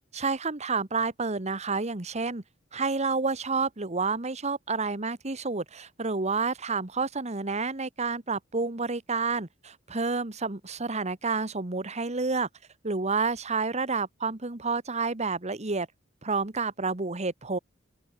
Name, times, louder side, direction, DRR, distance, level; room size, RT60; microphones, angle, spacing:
voice 1, 0.1-2.4 2.7-12.5 12.8-15.9 16.2-17.6, right 4 dB, 35° right, 1.5 m, -29 dB
open air
head